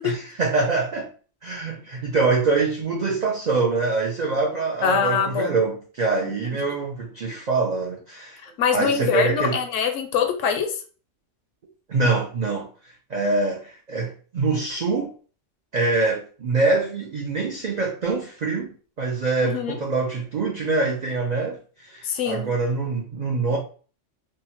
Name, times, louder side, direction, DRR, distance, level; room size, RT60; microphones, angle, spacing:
voice 1, 0.0-1.1 1.4-8.4 8.7-9.6 11.9-15.1 15.7-18.7 19.0-23.6, right 3 dB, 70° right, 0.4 m, -24 dB
voice 2, 4.8-5.6 8.4-10.8 19.4-19.8 22.0-22.5, left 7 dB, 80° left, 0.9 m, -23 dB
2.8 x 2.0 x 2.8 m
omnidirectional pair, 1.3 m